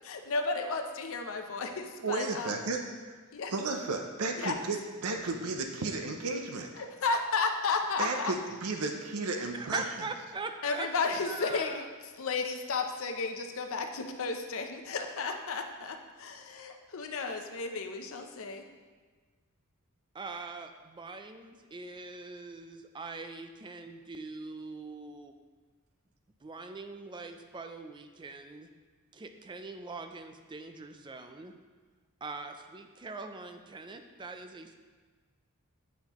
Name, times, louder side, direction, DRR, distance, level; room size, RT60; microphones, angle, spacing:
voice 1, 0.1-2.6 3.3-3.5 4.4-4.6 6.8-8.3 10.6-11.9 12.2-18.6, left 4 dB, 65° left, 5 dB, 0.6 m, -33 dB
voice 2, 2.0-2.8 3.5-6.7 8.0-9.8, right 3 dB, 80° right, 4 dB, 0.6 m, -33 dB
voice 3, 9.3-10.9 11.2-11.9 20.1-25.3 26.4-28.7 29.1-31.5 32.2-34.7, right 3 dB, 20° right, 6 dB, 0.4 m, -42 dB
8.4 x 5.7 x 3.0 m, 1.4 s
head